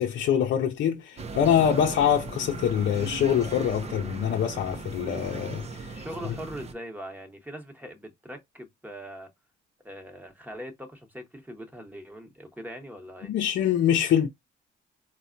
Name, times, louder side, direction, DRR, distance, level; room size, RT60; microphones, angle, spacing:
voice 1, 0.0-6.0 13.2-14.3, left 9 dB, 70° left, 0.6 m, -24 dB
sound 1, 1.2-6.7, right 3 dB, 35° right, 0.6 m, -38 dB
voice 2, 5.9-9.3 9.8-13.3, equal, 10° right, 1.1 m, -41 dB
4.0 x 2.2 x 2.5 m
cardioid pair, 90°, 20 cm